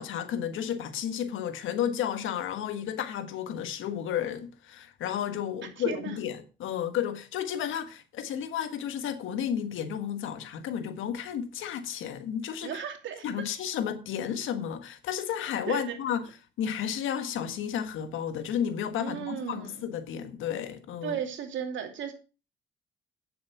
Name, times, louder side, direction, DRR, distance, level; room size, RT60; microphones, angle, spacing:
voice 1, 0.0-12.8 13.2-16.3 16.6-21.2, left 9 dB, 85° left, 1.6 m, -32 dB
voice 2, 5.8-6.2 12.6-13.5 15.7-15.9 19.0-19.9 21.0-22.1, right 8 dB, 75° right, 2.6 m, -35 dB
9.6 x 7.4 x 5.9 m
cardioid pair, 90°, 20 cm